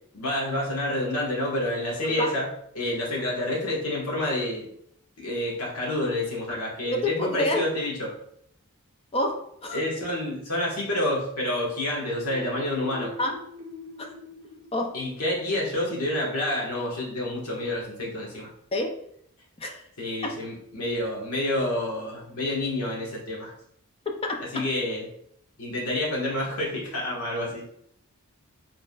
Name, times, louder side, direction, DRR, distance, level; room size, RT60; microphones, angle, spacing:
voice 1, 0.1-2.5 2.7-4.7 5.2-8.1 9.7-13.1 14.9-18.5 20.0-23.5 24.5-25.1 25.6-27.6, left 1 dB, 80° left, -3 dB, 1.6 m, -28 dB
voice 2, 6.8-7.7 9.1-9.8 13.2-13.3 14.0-14.1 14.7-14.9 18.7-18.9 19.6-19.8 20.2-20.4 24.1-24.7, left 1 dB, 25° left, 3 dB, 0.5 m, -28 dB
sound 1, 12.1-15.8, left 2 dB, 65° right, 0.6 m, -44 dB
5.3 x 3.7 x 2.4 m, 0.70 s
head